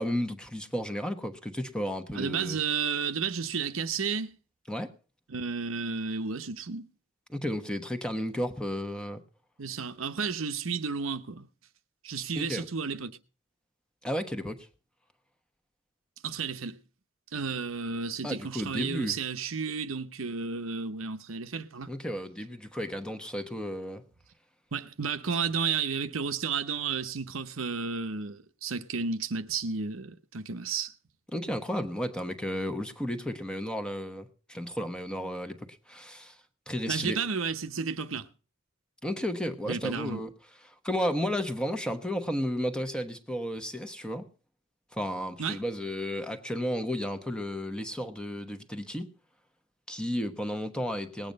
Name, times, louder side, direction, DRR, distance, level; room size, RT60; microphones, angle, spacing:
voice 1, 0.0-2.6 4.7-4.9 7.3-9.2 12.4-12.6 14.0-14.7 18.2-19.1 21.9-24.0 31.3-36.3 36.7-37.2 39.0-40.3 40.8-44.3 44.9-49.1 49.9-51.3, equal, 5° left, 1.0 m, -33 dB
voice 2, 2.1-4.3 5.3-6.9 9.6-11.5 12.0-13.2 16.2-16.8 17.3-21.9 24.7-30.9 36.9-38.3 39.7-40.2 45.4-45.6, right 5 dB, 80° right, 0.9 m, -32 dB
19.0 x 8.8 x 5.3 m
head